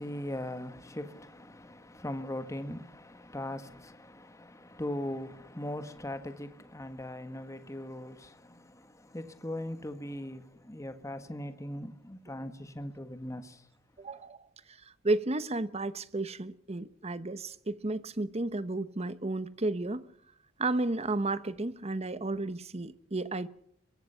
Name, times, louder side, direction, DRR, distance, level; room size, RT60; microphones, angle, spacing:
voice 1, 0.0-13.7, left 1 dB, 15° left, 1.5 m, -40 dB
voice 2, 14.0-20.1 20.6-23.5, right 2 dB, 30° right, 1.0 m, -33 dB
23.5 x 23.0 x 5.7 m
head